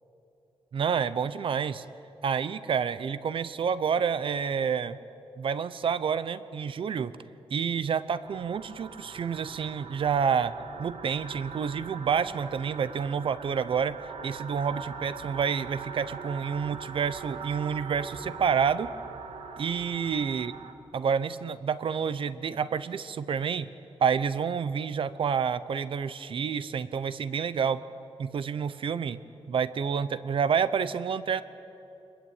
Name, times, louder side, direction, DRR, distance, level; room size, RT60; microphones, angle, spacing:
voice 1, 0.7-1.8 2.2-5.0 5.4-7.1 7.5-10.5 10.8-14.0 14.2-18.9 19.6-20.5 20.9-23.7 24.0-27.8 28.2-29.2 29.5-31.4, right 7 dB, 60° right, 15 dB, 0.8 m, -28 dB
sound 1, 8.2-20.7, right 5 dB, 90° right, 1.5 m, -42 dB
25.0 x 21.0 x 9.0 m, 2.8 s
wide cardioid pair, 175°, 10 cm